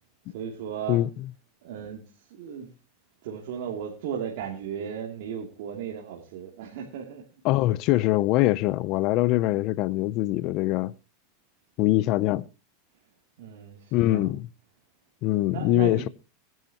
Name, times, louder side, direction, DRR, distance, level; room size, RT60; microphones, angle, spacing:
voice 1, 0.3-1.0 1.6-2.7 3.2-7.2 13.4-14.3 15.3-16.1, right 8 dB, 70° right, 2.7 m, -36 dB
voice 2, 0.9-1.3 7.4-10.9 11.8-12.4 13.9-14.5 15.2-16.1, left 16 dB, 50° left, 0.6 m, -23 dB
19.0 x 10.5 x 2.9 m
supercardioid pair, 135°, 0 cm